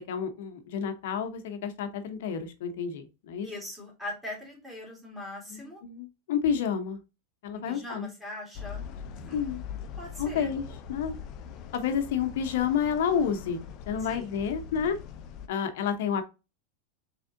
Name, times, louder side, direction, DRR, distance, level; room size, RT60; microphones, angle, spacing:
voice 1, 0.1-3.5 5.5-7.0 7.4-8.1 9.3-9.6 10.2-11.1 11.7-15.0 15.5-16.2, left 7 dB, 70° left, 7 dB, 0.9 m, -30 dB
voice 2, 3.4-5.8 7.5-8.8 9.2-9.5 10.0-10.5 14.1-14.3, left 1 dB, 5° right, -3 dB, 1.9 m, -41 dB
sound 1, 8.5-15.5, left 7 dB, 40° left, 0.5 m, -42 dB
3.6 x 3.3 x 3.8 m, 0.29 s
supercardioid pair, 140°, 0 cm